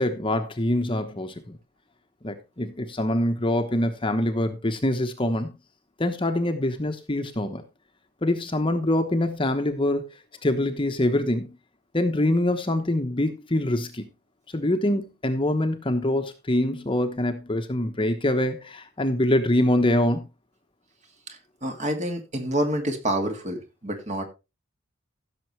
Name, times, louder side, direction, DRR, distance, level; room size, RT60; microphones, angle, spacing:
voice 1, 0.0-1.6 2.2-5.5 6.0-7.6 8.2-10.1 10.4-11.6 11.9-14.1 14.5-20.2, left 1 dB, 25° left, 1.1 m, -24 dB
voice 2, 21.3-24.2, right 1 dB, 35° right, 2.3 m, -28 dB
15.5 x 6.9 x 3.2 m
head